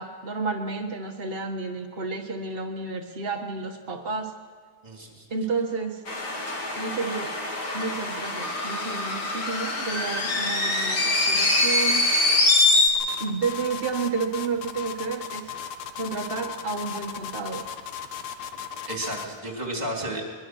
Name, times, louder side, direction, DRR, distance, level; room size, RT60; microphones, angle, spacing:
voice 1, 0.0-4.3 5.3-6.0 6.7-7.3 7.7-12.1 13.2-15.5 15.9-17.7, right 4 dB, 75° right, 2 dB, 0.5 m, -31 dB
voice 2, 4.8-5.3 18.9-20.2, right 1 dB, 15° right, 0 dB, 3.5 m, -32 dB
sound 1, 6.1-12.9, left 2 dB, 40° left, 3.1 m, -24 dB
sound 2, 13.0-19.4, left 8 dB, 70° left, 2.2 m, -36 dB
22.5 x 21.5 x 6.3 m, 1.6 s
omnidirectional pair, 3.3 m